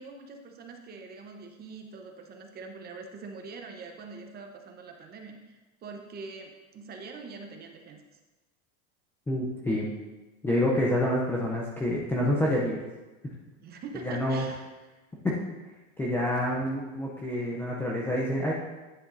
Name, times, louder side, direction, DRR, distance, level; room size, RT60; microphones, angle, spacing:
voice 1, 0.0-8.0 13.6-14.6, right 4 dB, 25° right, 3 dB, 0.8 m, -44 dB
voice 2, 9.3-9.9 10.4-12.8 14.0-14.4 15.2-15.4 16.0-18.5, left 1 dB, 5° left, -4 dB, 0.4 m, -27 dB
9.8 x 7.0 x 2.6 m, 1.2 s
supercardioid pair, 145°, 42 cm